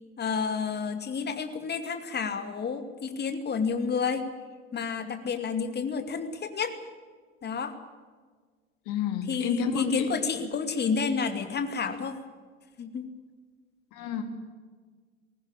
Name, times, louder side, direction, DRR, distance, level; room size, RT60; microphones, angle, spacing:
voice 1, 0.2-4.2 4.7-6.8 7.4-7.7 9.2-12.2 12.8-13.1, left 5 dB, 25° left, 8 dB, 2.4 m, -30 dB
voice 2, 8.9-9.9 13.9-14.2, left 7 dB, 50° left, 6 dB, 3.2 m, -29 dB
20.5 x 19.0 x 8.8 m, 1.5 s
figure-of-eight pair, 80°, 39 cm